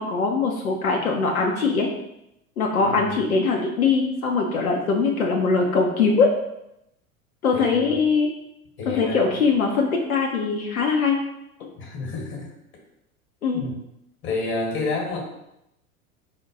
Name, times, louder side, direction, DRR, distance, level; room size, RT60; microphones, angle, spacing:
voice 1, 0.0-1.9 2.6-6.3 7.4-8.3 8.9-11.2 11.6-11.7 13.4-13.6, left 4 dB, 80° left, 0 dB, 0.6 m, -21 dB
voice 2, 2.8-3.1 7.5-8.0 8.8-9.3 11.8-12.5 13.5-13.8 14.2-15.2, left 3 dB, 30° left, 0 dB, 1.2 m, -29 dB
4.1 x 2.1 x 3.8 m, 0.84 s
figure-of-eight pair, 80°, 42 cm